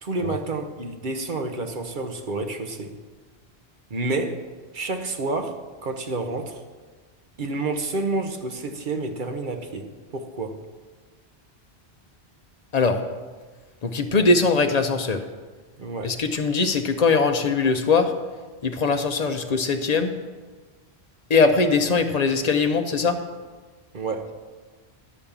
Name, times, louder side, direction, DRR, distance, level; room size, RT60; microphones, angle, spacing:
voice 1, 0.0-2.9 3.9-4.5 4.7-6.6 7.4-10.6 15.8-16.2 23.9-24.3, right 3 dB, 50° right, 5 dB, 1.0 m, -29 dB
voice 2, 13.8-15.2 16.0-18.1 18.6-20.1 21.3-23.2, left 4 dB, 40° left, 6 dB, 0.8 m, -21 dB
11.0 x 5.2 x 7.2 m, 1.4 s
omnidirectional pair, 1.1 m